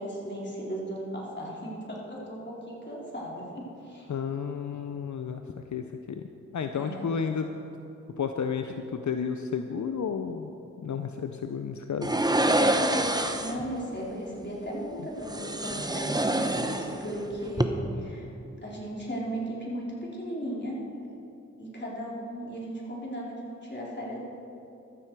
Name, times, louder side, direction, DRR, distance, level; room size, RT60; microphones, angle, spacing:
voice 1, 0.0-4.1 6.7-7.1 13.4-18.3 18.6-20.8 21.6-24.2, right 1 dB, 40° left, -4 dB, 3.7 m, -36 dB
voice 2, 4.1-5.4 5.7-6.2 6.5-7.5 8.2-10.5 10.8-12.2, left 6 dB, 80° left, 6 dB, 0.6 m, -32 dB
sound 1, 12.0-13.7 15.2-17.2 17.5-17.6, right 1 dB, 15° right, 0.9 m, -26 dB
15.0 x 13.5 x 4.7 m, 2.9 s
wide cardioid pair, 60°, 29 cm